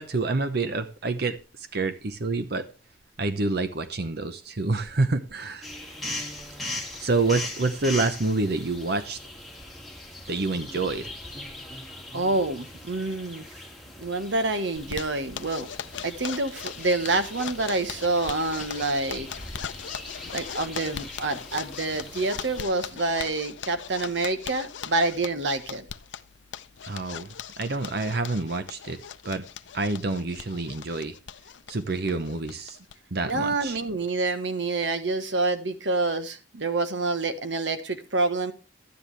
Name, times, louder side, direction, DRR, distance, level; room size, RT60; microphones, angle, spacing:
voice 1, 0.0-1.4 1.7-2.7 3.2-5.7 7.0-9.2 10.3-11.1 26.8-27.3 27.6-29.0 29.2-29.4 29.7-31.1 31.7-32.8 33.1-33.8, right 3 dB, 60° right, 0.9 m, -27 dB
sound 1, 5.6-22.7, left 1 dB, ahead, 2.2 m, -40 dB
voice 2, 12.1-13.5 14.0-15.7 16.0-19.3 20.3-25.9 33.3-38.5, right 3 dB, 75° right, 1.3 m, -27 dB
Zipper (clothing), 14.8-32.9 33.3-33.4 33.7-33.8 34.1-34.5, left 8 dB, 80° left, 0.6 m, -40 dB
12.0 x 9.6 x 3.3 m
head